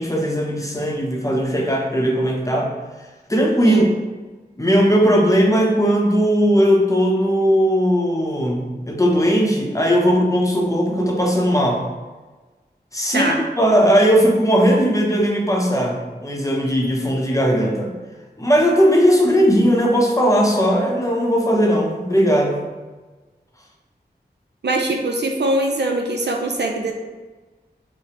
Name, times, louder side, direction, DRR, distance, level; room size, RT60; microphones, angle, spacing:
voice 1, 0.0-2.7 3.3-3.8 4.6-11.8 12.9-17.9 18.4-22.6, equal, 20° left, -1 dB, 0.6 m, -18 dB
voice 2, 24.6-26.9, right 1 dB, 80° right, 2 dB, 0.4 m, -22 dB
4.7 x 2.0 x 2.9 m, 1.3 s
wide cardioid pair, 50°, 18 cm